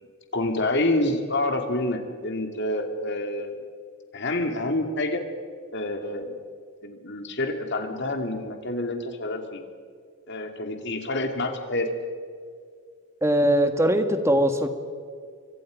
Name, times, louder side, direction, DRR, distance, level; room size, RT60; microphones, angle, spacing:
voice 1, 0.3-3.6 4.1-5.2 5.7-6.4 6.8-9.6 10.3-11.9, left 1 dB, 55° left, 5 dB, 2.6 m, -27 dB
voice 2, 13.2-14.7, equal, 15° right, 7 dB, 1.6 m, -21 dB
29.0 x 24.0 x 5.2 m, 2.1 s
head